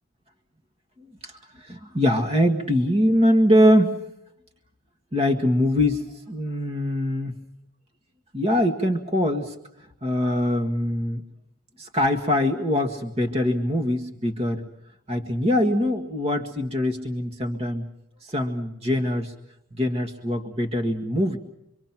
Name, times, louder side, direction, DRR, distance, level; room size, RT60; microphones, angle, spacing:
voice 1, 1.6-3.9 5.1-7.4 8.3-9.5 10.0-11.2 11.8-14.6 15.1-17.8 18.3-19.3 19.8-21.4, left 1 dB, 30° right, 4 dB, 1.8 m, -23 dB
26.0 x 25.0 x 6.0 m, 0.82 s
head